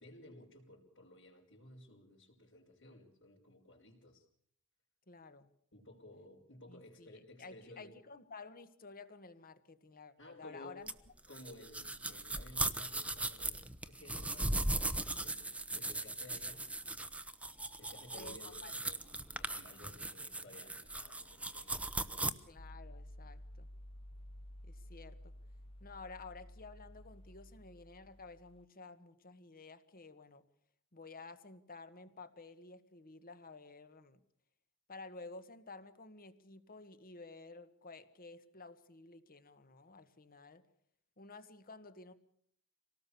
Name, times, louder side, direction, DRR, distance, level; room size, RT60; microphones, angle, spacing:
voice 1, 0.0-4.2 5.7-7.9 10.2-10.8 11.3-16.7 17.8-18.8 19.3-22.3, left 1 dB, 60° left, -6 dB, 4.6 m, -56 dB
voice 2, 5.1-5.5 6.7-10.9 18.1-19.0 22.5-23.7 24.6-25.3 25.8-30.4 30.9-34.2 34.9-40.6 41.2-42.1, left 3 dB, 40° left, 11 dB, 1.7 m, -53 dB
sound 1, 10.9-22.3, right 2 dB, 5° right, 1.0 m, -38 dB
sound 2, 22.6-28.6, equal, 25° left, 1.0 m, -53 dB
26.5 x 18.5 x 7.0 m, 0.68 s
head